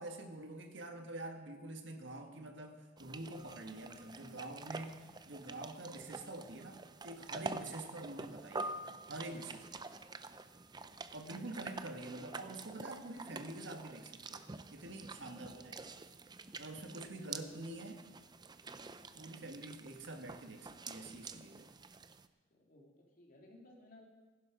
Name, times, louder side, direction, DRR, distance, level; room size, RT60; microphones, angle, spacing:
voice 1, 0.0-9.9 11.1-14.4 14.7-15.8 16.6-18.0 19.1-21.8, right 2 dB, 70° right, 4 dB, 1.6 m, -47 dB
sound 1, 3.0-22.3, right 3 dB, 25° right, 0.5 m, -48 dB
voice 2, 16.8-17.9 18.7-18.9 22.5-24.1, left 1 dB, 50° left, -1 dB, 2.9 m, -58 dB
16.0 x 11.5 x 5.1 m, 1.3 s
head